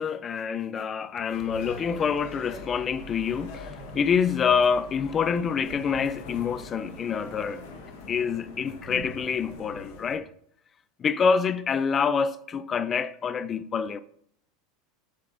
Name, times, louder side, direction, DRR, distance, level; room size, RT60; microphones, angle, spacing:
voice 1, 0.0-7.6 8.1-10.3 11.0-14.0, left 6 dB, 25° left, 0.3 m, -26 dB
sound 1, 1.3-10.2, left 3 dB, 65° left, 1.2 m, -42 dB
6.8 x 6.7 x 2.6 m
supercardioid pair, 150°, 0 cm